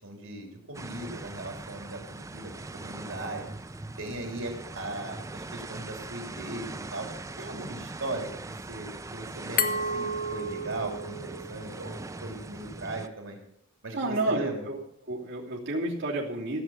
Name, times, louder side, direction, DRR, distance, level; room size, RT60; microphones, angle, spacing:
voice 1, 0.0-3.4 4.0-7.1 7.4-11.9 12.2-13.4 13.8-14.6, right 2 dB, 80° right, 1 dB, 3.3 m, -38 dB
sound 1, 0.7-13.1, right 2 dB, 15° right, 0.5 m, -41 dB
Glass, 9.6-12.4, left 1 dB, 45° left, 0.9 m, -32 dB
voice 2, 13.9-14.8 15.1-16.6, right 2 dB, 60° right, -6 dB, 3.0 m, -30 dB
15.5 x 7.6 x 7.2 m, 0.71 s
head